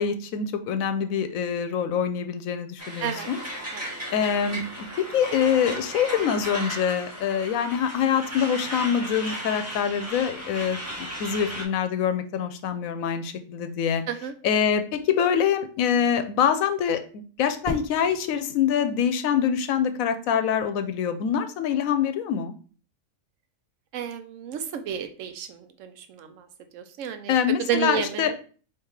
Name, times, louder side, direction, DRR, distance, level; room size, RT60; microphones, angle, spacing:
voice 1, 0.0-3.4 4.1-10.8 11.2-14.0 14.4-22.5 27.3-28.3, left 8 dB, 85° left, 9 dB, 1.0 m, -25 dB
Truck, 2.8-11.6, equal, 10° right, 1.1 m, -35 dB
Fireworks, 17.6-19.8, left 2 dB, 35° right, 1.1 m, -39 dB
voice 2, 23.9-26.5 26.7-27.4 27.7-28.3, right 8 dB, 70° right, 8 dB, 1.0 m, -31 dB
3.6 x 2.9 x 4.7 m, 0.39 s
omnidirectional pair, 1.4 m